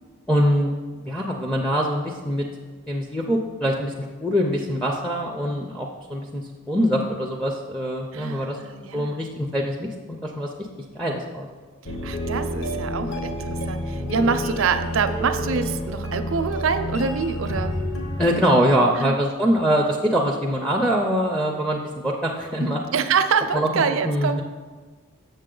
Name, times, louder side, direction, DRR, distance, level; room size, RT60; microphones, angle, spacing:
voice 1, 0.3-0.7 1.0-2.4 2.9-6.4 6.7-8.6 8.9-10.5 11.0-11.5 18.2-22.8 23.5-23.7 24.0-24.4, equal, 5° left, 0 dB, 0.4 m, -23 dB
voice 2, 8.1-9.2 12.0-17.7 19.0-19.2 22.6-24.4, right 5 dB, 65° right, 9 dB, 0.4 m, -25 dB
sound 1, 11.8-18.2, equal, 60° left, 1.0 m, -29 dB
6.8 x 6.6 x 3.8 m, 1.4 s
head